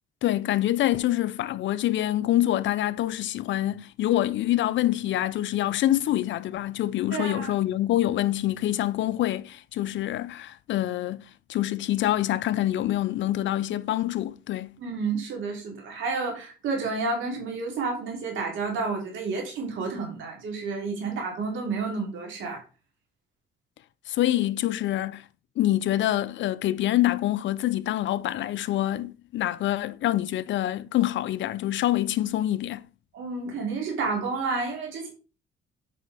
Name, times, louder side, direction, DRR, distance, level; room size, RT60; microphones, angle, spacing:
voice 1, 0.2-14.8 24.1-25.2 25.6-32.8, left 14 dB, 70° left, 0.5 m, -26 dB
voice 2, 7.1-7.5 14.8-22.6 33.1-35.1, right 4 dB, 75° right, 3.1 m, -30 dB
7.7 x 5.4 x 3.4 m
cardioid pair, 90°, 20 cm